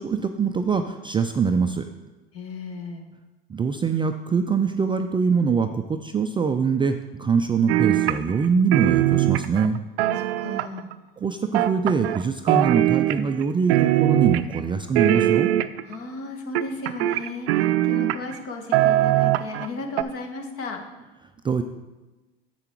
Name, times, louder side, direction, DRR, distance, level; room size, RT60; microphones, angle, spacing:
voice 1, 0.0-1.9 3.5-9.8 11.2-15.5 21.4-21.6, right 5 dB, 15° right, 6 dB, 0.3 m, -23 dB
voice 2, 2.3-3.1 10.2-10.9 15.9-20.8, left 3 dB, 45° left, 4 dB, 1.6 m, -35 dB
sound 1, 7.7-8.5 8.7-10.9 11.5-12.2 12.5-13.4 13.7-14.6 15.0-16.0 16.6-18.4 18.7-19.7 20.0-20.1, right 14 dB, 80° right, 0.5 m, -21 dB
7.8 x 6.7 x 4.5 m, 1.1 s
hypercardioid pair, 90°, 31 cm